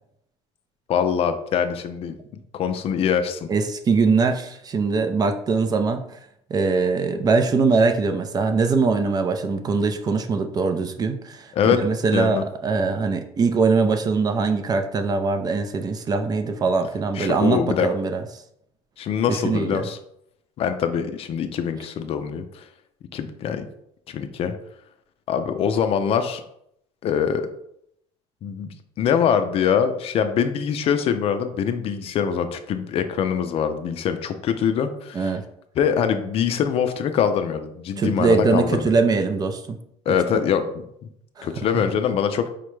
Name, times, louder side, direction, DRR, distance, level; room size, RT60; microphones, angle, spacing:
voice 1, 0.9-2.1 2.5-3.5 11.5-11.8 12.1-12.4 17.2-17.9 19.0-20.0 20.6-22.6 23.1-23.7 24.1-24.5 25.3-26.4 27.0-27.4 28.4-28.7 29.0-35.3 35.8-38.9 40.1-40.7 41.4-42.4, left 7 dB, 45° left, 9 dB, 0.4 m, -23 dB
voice 2, 3.5-6.0 6.5-18.2 19.3-19.8 35.1-35.4 38.0-39.8 40.1-40.4 41.4-41.5, right 4 dB, 30° right, 7 dB, 0.4 m, -22 dB
4.9 x 2.2 x 3.1 m, 0.75 s
supercardioid pair, 105°, 13 cm